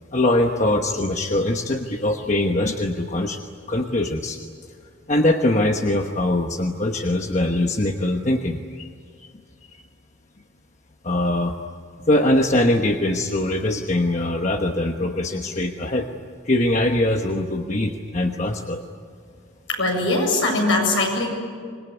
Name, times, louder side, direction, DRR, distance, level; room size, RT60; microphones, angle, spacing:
voice 1, 0.1-3.4 3.7-4.4 5.1-8.9 11.0-11.6 12.1-16.1 16.5-18.8, left 1 dB, 35° left, 3 dB, 1.2 m, -22 dB
voice 2, 19.7-21.3, left 2 dB, 70° left, 1 dB, 7.5 m, -21 dB
26.5 x 21.5 x 9.6 m, 2.1 s
head